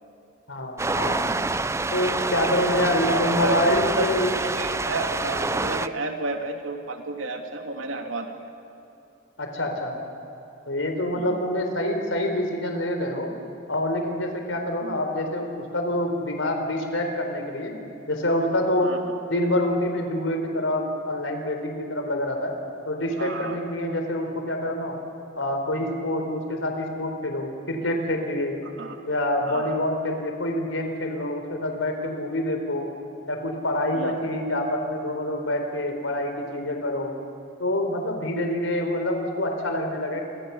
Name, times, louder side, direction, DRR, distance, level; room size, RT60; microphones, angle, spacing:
voice 1, 0.5-1.2 1.9-4.3 9.4-10.0 10.7-13.3 13.7-17.7 18.1-19.0 19.3-22.5 22.9-24.9 25.4-28.6 29.1-32.9 33.3-37.1 37.6-40.2, left 1 dB, 80° left, 4 dB, 4.2 m, -26 dB
sound 1, 0.8-5.9, right 3 dB, 15° right, 0.5 m, -27 dB
voice 2, 2.8-4.1 4.3-8.3 11.1-11.4 14.8-15.0 18.8-19.0 23.2-23.7 28.8-29.0 29.5-29.8 33.9-34.1, right 2 dB, 80° right, 3 dB, 3.1 m, -32 dB
29.0 x 25.0 x 7.2 m, 2.9 s
head